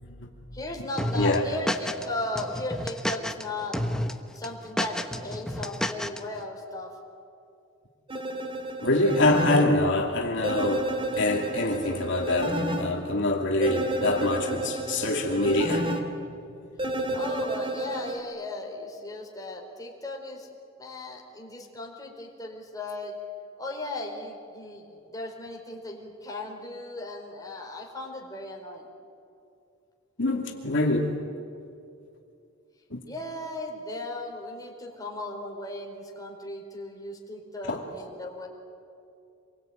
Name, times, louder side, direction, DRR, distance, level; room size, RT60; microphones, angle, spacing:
voice 1, 0.0-0.6 1.2-1.4 8.8-16.0 30.2-31.1 32.9-33.0 37.7-37.8, left 2 dB, 65° left, 0 dB, 2.7 m, -25 dB
voice 2, 0.5-3.8 4.3-7.0 17.1-20.5 20.8-23.2 23.6-24.9 25.1-28.9 33.1-38.5, left 2 dB, 20° left, 0 dB, 4.5 m, -36 dB
sound 1, 1.0-2.1 2.4-3.4 3.7-4.1 4.4-6.2, left 1 dB, 5° left, 1.2 m, -30 dB
sound 2, 8.1-9.6 10.4-12.8 13.6-16.0 16.8-18.2, right 1 dB, 25° right, 2.9 m, -31 dB
27.0 x 22.5 x 9.3 m, 2.5 s
head